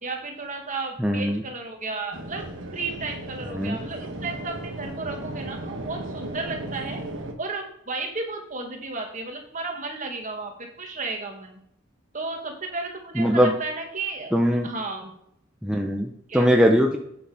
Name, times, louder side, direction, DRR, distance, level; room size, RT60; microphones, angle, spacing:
voice 1, 0.0-7.0 7.4-11.6 12.1-14.3 14.6-15.1 16.3-16.5, right 3 dB, 40° right, 3 dB, 1.8 m, -33 dB
voice 2, 1.0-1.4 3.5-3.8 13.2-13.5 14.3-14.7 15.6-17.0, equal, 5° right, 1 dB, 0.8 m, -21 dB
sound 1, 2.1-7.3, right 1 dB, 70° right, 1.3 m, -35 dB
8.5 x 6.4 x 5.0 m, 0.72 s
head